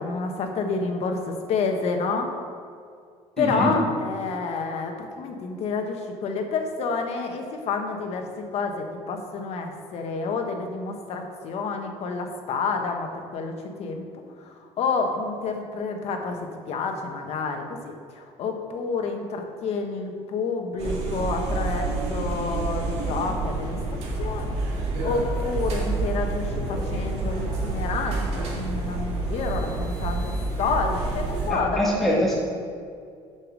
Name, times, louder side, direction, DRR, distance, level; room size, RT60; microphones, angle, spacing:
voice 1, 0.0-2.3 3.4-14.0 14.4-16.4 16.7-23.8 24.2-32.2, left 4 dB, 60° left, 4 dB, 1.2 m, -29 dB
voice 2, 3.4-3.7 31.5-32.3, equal, ahead, -5 dB, 2.2 m, -23 dB
sound 1, 20.8-31.5, right 3 dB, 60° right, 2.1 m, -28 dB
6.5 x 5.7 x 6.3 m, 2.3 s
cardioid pair, 135°, 12 cm